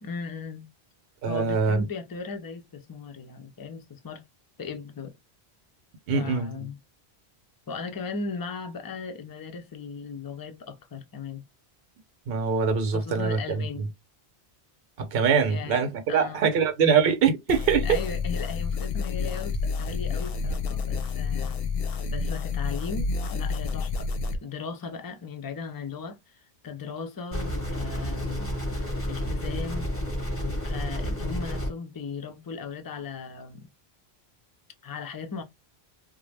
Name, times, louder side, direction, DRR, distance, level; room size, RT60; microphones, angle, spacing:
voice 1, 0.0-0.7 1.3-4.2 4.6-5.2 6.1-6.8 7.7-11.4 12.9-13.9 15.5-15.8 16.1-16.5 17.8-21.6 22.1-24.1 24.4-28.6 29.1-29.9 30.4-33.7 34.8-35.4, left 5 dB, 40° left, 0.3 m, -37 dB
voice 2, 1.2-1.9 6.1-6.7 12.3-13.9 15.0-18.0, right 6 dB, 70° right, 0.9 m, -24 dB
sound 1, 17.5-24.4, left 4 dB, 70° left, 0.7 m, -29 dB
sound 2, 27.3-31.7, equal, 15° left, 0.8 m, -30 dB
2.5 x 2.1 x 3.1 m
omnidirectional pair, 1.1 m